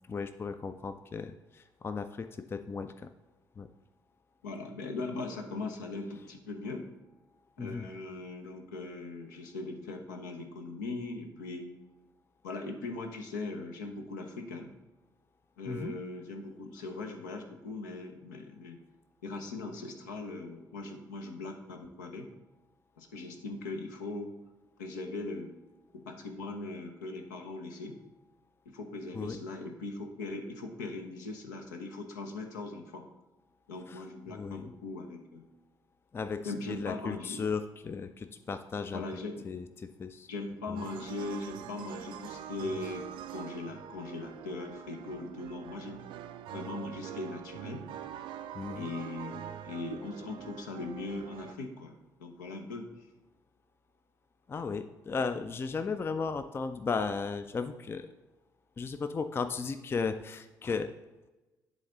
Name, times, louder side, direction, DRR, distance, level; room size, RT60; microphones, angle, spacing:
voice 1, 0.1-3.1 3.6-3.7 7.6-7.9 15.7-15.9 29.1-29.4 33.9-34.0 34.3-34.7 36.1-39.0 39.4-40.3 40.7-40.8 48.5-48.9 54.5-58.1 58.8-60.9, left 5 dB, 25° left, 10 dB, 0.4 m, -35 dB
voice 2, 4.4-6.9 7.6-11.7 12.4-14.7 15.6-18.8 19.2-22.3 23.0-24.3 24.8-25.6 25.9-28.0 28.6-33.0 33.7-35.5 36.4-37.5 38.9-39.5 40.3-46.0 46.5-47.8 48.7-51.9 52.2-52.9 55.8-56.0, left 3 dB, 75° left, 3 dB, 0.8 m, -40 dB
sound 1, 40.8-51.5, right 10 dB, 55° right, 0.4 m, -44 dB
10.5 x 3.9 x 3.7 m, 1.1 s
figure-of-eight pair, 45°, 10 cm